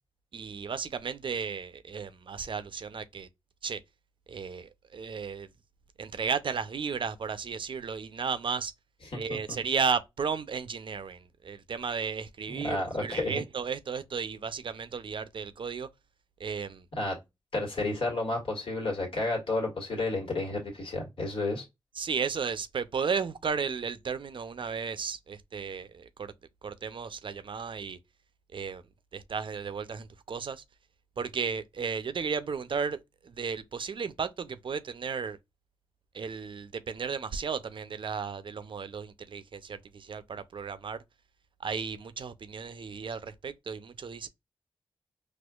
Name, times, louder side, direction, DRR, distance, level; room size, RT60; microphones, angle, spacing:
voice 1, 0.3-3.3 3.6-3.8 4.3-5.5 6.0-8.7 9.1-15.9 16.4-16.8 22.0-26.3 26.6-28.0 28.5-28.8 29.1-30.6 31.2-35.4 36.1-41.0 41.6-44.3, right 5 dB, 60° right, 0.5 m, -34 dB
voice 2, 9.1-9.6 12.5-13.4 16.9-17.2 17.5-21.6, left 2 dB, 65° left, 1.7 m, -31 dB
4.3 x 2.4 x 2.3 m
cardioid pair, 45°, 10 cm